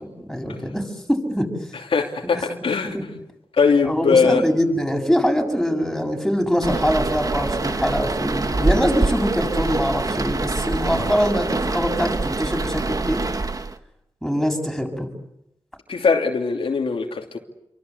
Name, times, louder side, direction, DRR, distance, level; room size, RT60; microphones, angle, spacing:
voice 1, 0.0-1.5 2.2-2.4 2.9-3.1 3.8-13.2 14.2-15.1, equal, ahead, 7.2 m, -23 dB
voice 2, 1.9-3.0 3.5-4.4 15.9-17.4, left 5 dB, 85° left, 2.9 m, -20 dB
sound 1, 6.6-13.8, right 3 dB, 40° right, 1.5 m, -25 dB
28.5 x 24.5 x 8.3 m
wide cardioid pair, 75°, 9 cm